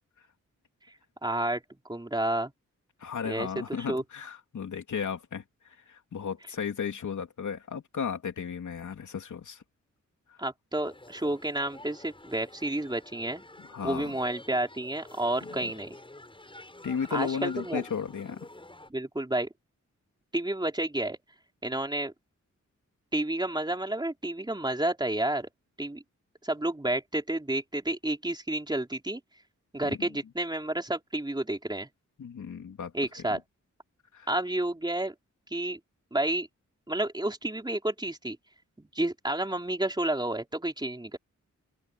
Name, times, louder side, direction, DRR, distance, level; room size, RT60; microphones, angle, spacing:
voice 1, 1.2-1.6 1.9-2.5 3.2-4.0 10.4-13.4 13.8-16.0 17.1-17.8 18.9-19.5 20.3-21.2 21.6-22.1 23.1-25.5 25.8-26.0 26.4-29.2 29.7-31.9 32.9-33.4 34.3-35.1 35.5-35.8 36.1-36.5 36.9-38.4 38.8-41.2, right 1 dB, 15° right, 3.7 m, -30 dB
voice 2, 3.0-5.4 5.9-9.6 10.3-10.4 13.7-14.1 15.6-15.7 16.8-18.5 29.8-30.1 32.2-32.9 33.3-33.4 34.1-34.3, left 7 dB, 80° left, 3.3 m, -34 dB
sound 1, 10.8-18.9, left 2 dB, 15° left, 7.4 m, -49 dB
open air
wide cardioid pair, 105°, 30 cm